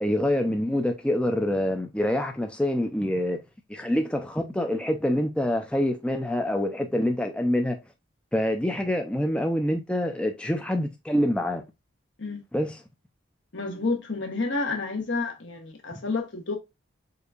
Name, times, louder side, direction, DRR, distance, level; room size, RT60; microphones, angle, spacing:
voice 1, 0.0-3.4 3.7-7.8 8.3-11.6 12.5-12.8, left 1 dB, 5° left, 0.4 m, -26 dB
voice 2, 13.5-16.6, left 3 dB, 75° left, 1.3 m, -30 dB
6.6 x 2.7 x 2.4 m
head